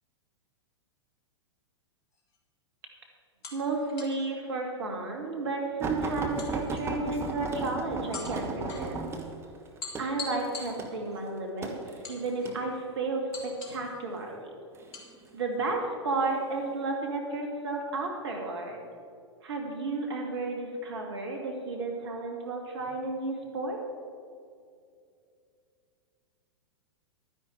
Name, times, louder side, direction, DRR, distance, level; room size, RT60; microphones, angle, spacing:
sound 1, 2.1-2.4 3.4-4.3 6.4-7.2 8.1-8.9 9.8-11.2 12.0-12.7 13.3-13.9 14.9-15.1, left 4 dB, 45° left, 2.6 m, -43 dB
voice 1, 3.5-9.0 10.0-11.7 12.1-14.5 15.3-18.8 19.4-23.8, right 3 dB, 60° right, 1 dB, 2.4 m, -32 dB
sound 2, 5.8-12.6 13.4-13.8 14.7-15.4 16.1-16.3 16.7-16.8, right 4 dB, 15° right, 1.2 m, -35 dB
11.5 x 10.0 x 4.7 m, 2.4 s
figure-of-eight pair, 100°, 15 cm